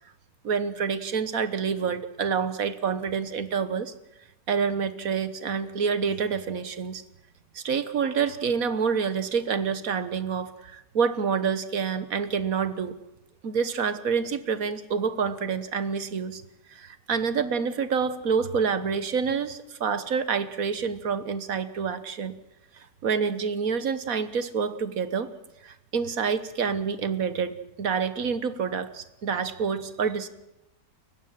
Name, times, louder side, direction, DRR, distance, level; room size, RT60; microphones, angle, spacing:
voice 1, 0.4-3.9 4.5-7.0 7.5-13.0 13.4-16.4 16.7-22.3 22.8-25.3 25.6-30.3, right 6 dB, 55° right, 13 dB, 1.5 m, -27 dB
29.5 x 15.5 x 7.6 m, 0.91 s
omnidirectional pair, 1.9 m